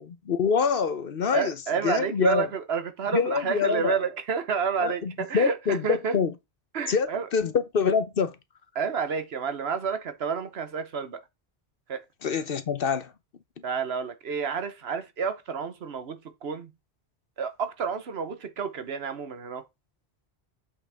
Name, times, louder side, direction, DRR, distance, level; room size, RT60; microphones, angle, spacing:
voice 1, 0.0-1.5 1.8-2.5 3.1-4.0 4.8-6.3 6.9-8.4 12.2-13.1, left 6 dB, 60° left, 1.0 m, -25 dB
voice 2, 1.3-6.2 6.7-7.3 8.7-11.2 11.9-12.0 13.6-16.7 17.4-19.6, right 6 dB, 70° right, 1.2 m, -30 dB
7.6 x 6.3 x 3.5 m
omnidirectional pair, 1.1 m